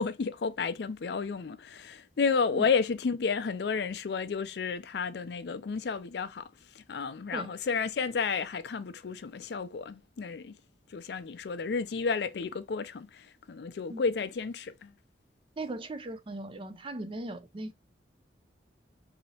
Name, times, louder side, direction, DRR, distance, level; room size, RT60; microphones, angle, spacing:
voice 1, 0.0-6.5 6.7-10.6 10.9-14.9, left 5 dB, 60° left, 0.4 m, -31 dB
voice 2, 15.6-17.7, right 2 dB, 30° right, 0.4 m, -38 dB
4.1 x 2.8 x 2.7 m
head